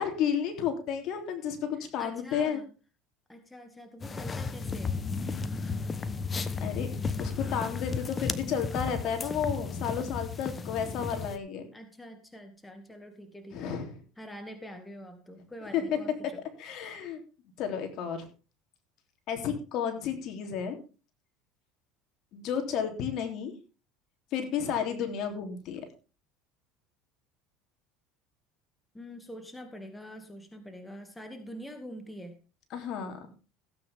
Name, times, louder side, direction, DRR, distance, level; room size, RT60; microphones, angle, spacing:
voice 1, 0.0-2.6 6.6-6.9 7.2-11.7 13.5-13.9 15.7-15.8 16.6-17.2 17.6-18.2 19.3-20.8 22.3-23.5 24.3-25.8 32.7-33.3, left 8 dB, 55° left, 5 dB, 3.2 m, -32 dB
voice 2, 1.7-2.7 3.3-5.0 11.7-13.8 14.2-16.4 28.9-32.4, equal, 10° left, 6 dB, 2.2 m, -45 dB
sound 1, 4.0-11.4, left 4 dB, 25° left, 1.1 m, -34 dB
16.5 x 9.0 x 3.6 m, 0.35 s
supercardioid pair, 110°, 0 cm